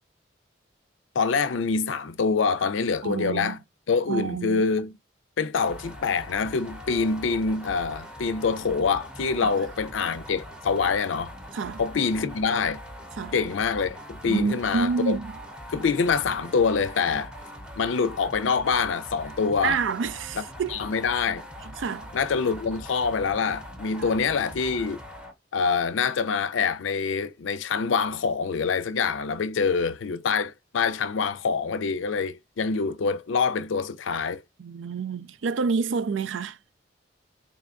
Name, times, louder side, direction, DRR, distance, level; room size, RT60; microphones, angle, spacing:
voice 1, 1.2-3.6 3.9-4.9 5.4-11.3 11.8-12.8 13.3-15.2 15.7-17.3 17.8-19.8 20.7-21.4 22.1-25.0 25.5-34.4, left 5 dB, 85° left, 0.5 m, -25 dB
voice 2, 3.0-3.6 4.1-4.6 9.4-9.5 11.5-11.8 13.2-13.3 14.3-15.4 19.6-20.8 21.6-22.1 24.0-24.1 34.6-36.6, right 5 dB, 80° right, 0.4 m, -28 dB
sound 1, 5.5-25.3, equal, 5° right, 0.7 m, -42 dB
4.1 x 3.4 x 2.4 m
head